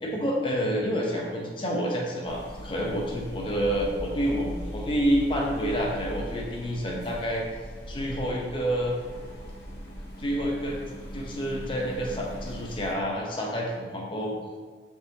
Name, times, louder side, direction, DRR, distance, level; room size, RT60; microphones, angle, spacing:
voice 1, 0.0-7.4 7.9-8.9 10.2-10.8 11.1-14.4, equal, 30° left, -2 dB, 0.5 m, -28 dB
sound 1, 2.2-12.9, equal, 60° left, 0.9 m, -39 dB
3.8 x 3.5 x 2.8 m, 1.5 s
head